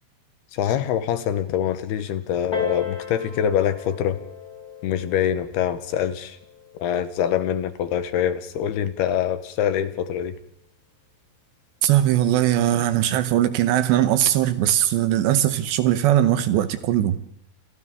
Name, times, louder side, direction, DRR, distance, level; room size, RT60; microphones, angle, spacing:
voice 1, 0.5-4.2 4.8-6.4 6.8-10.3, left 9 dB, 75° left, 2.8 m, -24 dB
Piano, 2.5-7.7 8.5-8.6, left 6 dB, 25° left, 3.1 m, -35 dB
voice 2, 11.8-17.2, right 12 dB, 80° right, 3.0 m, -20 dB
29.5 x 28.0 x 3.7 m
omnidirectional pair, 5.1 m